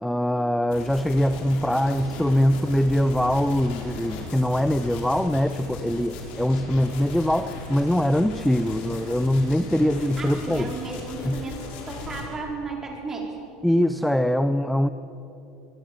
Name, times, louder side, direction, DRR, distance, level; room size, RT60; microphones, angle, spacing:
voice 1, 0.0-10.7 11.3-11.4 13.6-14.9, equal, ahead, 11 dB, 0.6 m, -23 dB
sound 1, 0.7-12.2, left 3 dB, 60° left, 5.9 m, -37 dB
voice 2, 10.2-13.4, right 3 dB, 20° right, 0 dB, 4.7 m, -34 dB
23.5 x 23.0 x 7.6 m, 2.9 s
cardioid pair, 145°, 2 cm